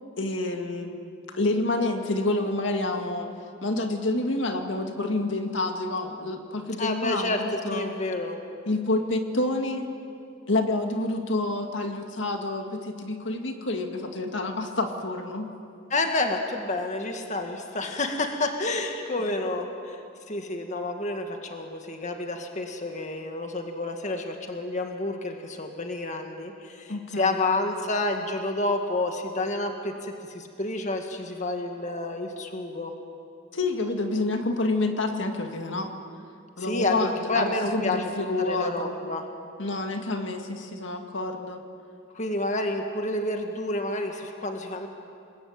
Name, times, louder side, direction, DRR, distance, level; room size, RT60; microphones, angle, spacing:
voice 1, 0.2-1.0 1.3-3.3 3.6-7.9 8.7-9.9 10.5-15.5 26.9-27.4 33.5-35.9 36.6-38.9 39.6-41.6, left 2 dB, 65° left, 4 dB, 2.1 m, -28 dB
voice 2, 6.8-8.4 15.9-20.0 20.3-32.9 36.6-39.2 42.2-44.9, left 2 dB, 40° left, 4 dB, 1.9 m, -29 dB
29.0 x 21.0 x 8.8 m, 2.5 s
head